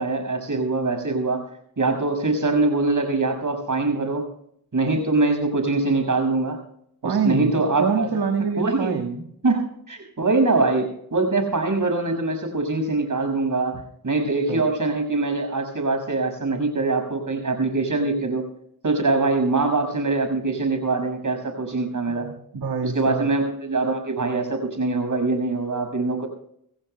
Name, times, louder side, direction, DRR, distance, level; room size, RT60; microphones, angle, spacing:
voice 1, 0.0-1.4 1.8-4.2 4.7-6.6 7.0-8.1 8.6-9.0 9.4-18.5 18.8-22.3 22.8-26.3, right 3 dB, 55° right, 5 dB, 6.1 m, -23 dB
voice 2, 7.0-9.2 14.5-14.7 22.1-23.3, right 5 dB, 80° right, 3 dB, 1.8 m, -26 dB
26.0 x 15.5 x 2.2 m, 0.70 s
cardioid pair, 55°, 38 cm